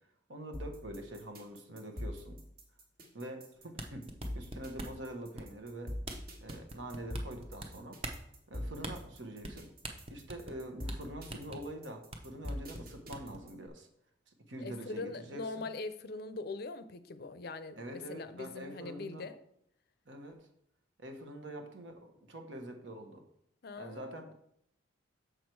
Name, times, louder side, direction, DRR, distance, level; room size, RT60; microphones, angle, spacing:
voice 1, 0.3-2.4 3.1-4.0 4.3-6.0 6.4-8.0 8.5-9.7 10.1-13.9 14.5-15.7 17.8-19.2 20.1-20.5 21.0-23.2 23.8-24.3, right 1 dB, 70° right, 4 dB, 1.2 m, -45 dB
sound 1, 0.5-13.7, equal, 50° right, 1.6 m, -43 dB
sound 2, 3.6-5.0 5.4-5.7 6.0-6.2 6.5-7.7 8.0-8.2 8.8-8.9 9.4-9.6 9.8-10.6 10.9-11.0 11.3-11.6 12.1-12.2 12.5-13.4, right 2 dB, 30° right, 0.7 m, -42 dB
voice 2, 14.6-19.4 23.6-24.3, left 3 dB, 50° left, 12 dB, 0.5 m, -42 dB
6.6 x 6.2 x 4.6 m, 0.71 s
head